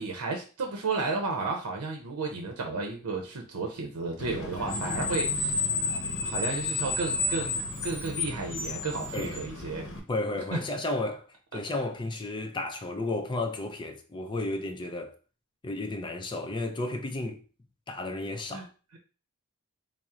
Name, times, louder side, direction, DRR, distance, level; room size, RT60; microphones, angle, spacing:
voice 1, 0.0-5.7 6.2-9.9 10.5-10.6 18.5-18.6, right 3 dB, 90° right, 0.6 m, -33 dB
Screech, 4.2-10.0, left 3 dB, 55° left, 0.8 m, -31 dB
voice 2, 10.1-11.3 11.5-15.2 15.6-17.4 17.9-18.7, left 2 dB, 20° left, 0.4 m, -33 dB
4.2 x 2.0 x 3.6 m
head